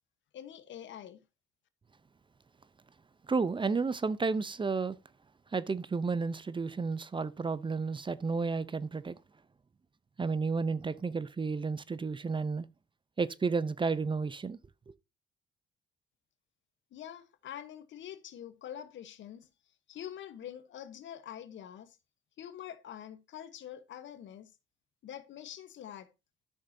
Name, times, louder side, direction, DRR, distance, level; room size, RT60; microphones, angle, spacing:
voice 1, 0.3-1.2 16.9-19.5 19.9-22.0 22.4-24.5 25.0-26.1, left 10 dB, 70° left, 1.1 m, -45 dB
voice 2, 3.3-5.0 5.5-9.2 10.2-12.7 13.2-14.6, right 4 dB, 25° right, 0.6 m, -32 dB
12.5 x 6.5 x 2.7 m
cardioid pair, 90°, 20 cm